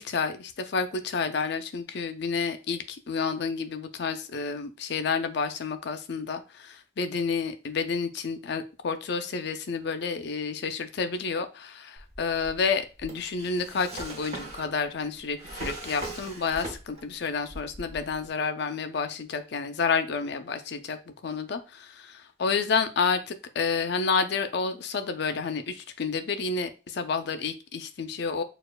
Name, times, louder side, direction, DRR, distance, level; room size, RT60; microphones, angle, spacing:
voice 1, 0.0-6.4 7.0-21.0 21.2-21.6 22.4-28.4, left 5 dB, 60° left, 9 dB, 0.4 m, -29 dB
Drawer open or close, 12.0-17.2 17.5-18.3, right 2 dB, 35° right, 1.0 m, -40 dB
6.4 x 2.4 x 2.2 m, 0.32 s
head